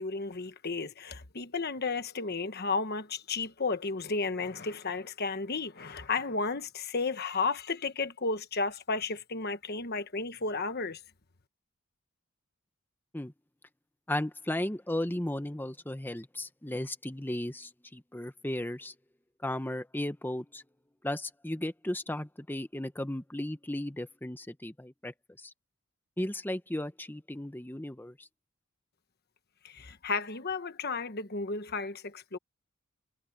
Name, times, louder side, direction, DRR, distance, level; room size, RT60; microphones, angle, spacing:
voice 1, 0.0-11.0 29.6-32.4, left 4 dB, 45° left, 1.2 m, -33 dB
voice 2, 14.1-18.9 19.4-20.6 21.0-25.5 26.2-28.3, left 1 dB, 10° left, 0.8 m, -35 dB
head